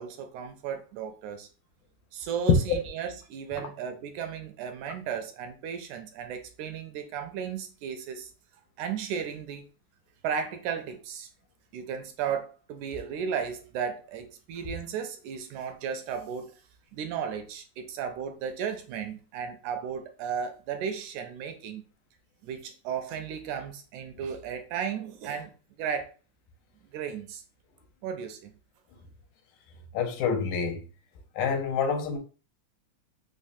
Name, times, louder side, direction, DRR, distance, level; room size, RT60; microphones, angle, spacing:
voice 1, 0.0-1.5 2.1-8.3 8.8-9.6 10.2-11.3 11.7-16.6 16.9-21.8 22.4-25.5 25.8-26.1 26.9-27.4 28.0-28.5, right 7 dB, 80° right, 1.9 m, -35 dB
voice 2, 29.9-30.8 31.4-32.2, left 6 dB, 85° left, 2.1 m, -27 dB
5.1 x 2.1 x 2.5 m
omnidirectional pair, 3.6 m